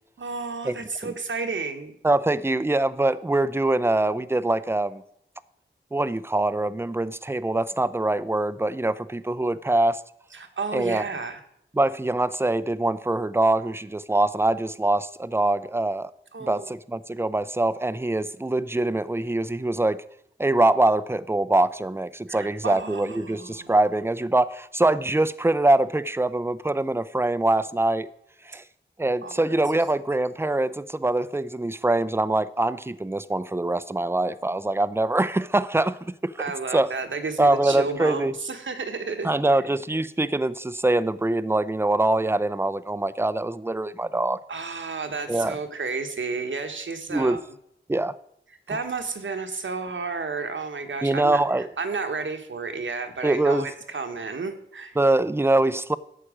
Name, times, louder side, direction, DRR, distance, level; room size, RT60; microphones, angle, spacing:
voice 1, 0.2-1.9 10.3-11.4 16.3-16.7 22.3-23.7 29.2-29.6 36.4-39.6 44.5-47.4 48.7-55.0, right 4 dB, 70° right, 1.3 m, -32 dB
voice 2, 2.0-5.0 5.9-10.0 10.7-11.0 11.7-16.1 16.4-20.0 20.4-28.1 28.5-28.6 29.0-36.4 36.7-36.9 37.4-38.3 39.2-44.4 45.3-45.6 47.1-47.4 47.9-48.1 48.7-48.8 51.0-51.7 53.2-53.7 55.0-56.0, right 2 dB, 10° right, 0.5 m, -23 dB
11.5 x 7.6 x 5.0 m
cardioid pair, 45°, 20 cm